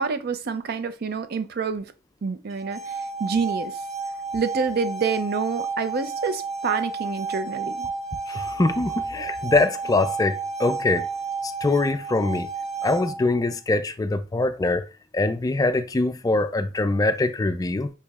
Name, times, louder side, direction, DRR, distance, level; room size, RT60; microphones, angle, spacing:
voice 1, 0.0-1.9 2.2-3.8 4.3-7.9, right 5 dB, 55° right, 0.5 m, -27 dB
sound 1, 2.5-13.5, right 4 dB, 35° right, 1.3 m, -32 dB
voice 2, 8.3-11.1 11.4-12.5 12.8-14.9 15.1-17.9, left 2 dB, 20° left, 0.3 m, -23 dB
6.3 x 2.9 x 2.4 m
head